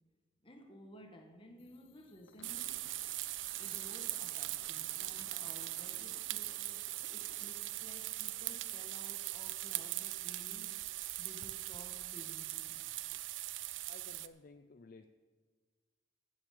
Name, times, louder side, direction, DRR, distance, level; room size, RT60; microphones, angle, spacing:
voice 1, 0.4-2.9 3.6-10.7 11.2-12.8, equal, 25° left, 1.5 m, -55 dB
sound 1, 1.6-8.6, left 3 dB, 70° left, 1.0 m, -61 dB
sound 2, 2.4-14.3, right 16 dB, 75° right, 0.5 m, -40 dB
voice 2, 13.9-15.1, left 3 dB, 45° left, 0.5 m, -55 dB
15.5 x 7.3 x 6.9 m
head